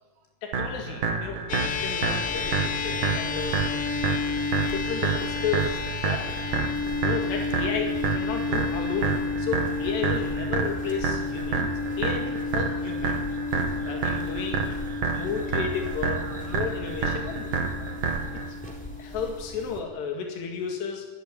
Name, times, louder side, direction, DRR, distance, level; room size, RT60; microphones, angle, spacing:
voice 1, 0.4-1.4 1.8-3.8 4.7-6.3 7.0-11.7 12.0-13.2 13.9-14.7 15.1-17.5 18.3-18.6 19.0-21.1, left 6 dB, 90° left, 2 dB, 4.4 m, -33 dB
sound 1, 0.5-18.5, right 5 dB, 55° right, 3.8 m, -29 dB
sound 2, 1.5-20.0, left 4 dB, 70° left, 1.3 m, -32 dB
sound 3, 1.7-19.8, equal, ahead, 3.5 m, -43 dB
voice 2, 6.7-7.1 8.3-8.4 13.5-14.0 15.1-15.4 15.8-16.9 17.8-19.0, right 7 dB, 85° right, 1 dB, 3.8 m, -49 dB
27.5 x 14.0 x 9.6 m, 1.3 s
omnidirectional pair, 4.7 m